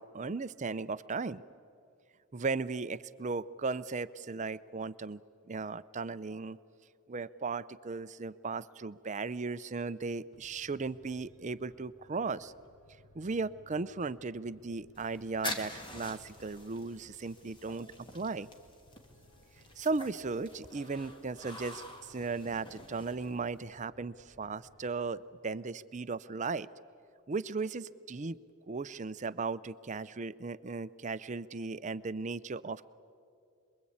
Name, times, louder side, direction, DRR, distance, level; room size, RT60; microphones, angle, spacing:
voice 1, 0.0-1.4 2.3-5.2 5.5-6.6 7.1-12.5 13.2-18.5 19.8-26.7 27.3-28.4 28.7-32.9, right 4 dB, 30° right, 15 dB, 0.5 m, -36 dB
sound 1, 10.3-25.4, left 1 dB, 60° left, 7.6 m, -62 dB
sound 2, 14.9-23.6, left 1 dB, 20° left, 2.0 m, -46 dB
27.0 x 22.0 x 8.6 m, 2.5 s
head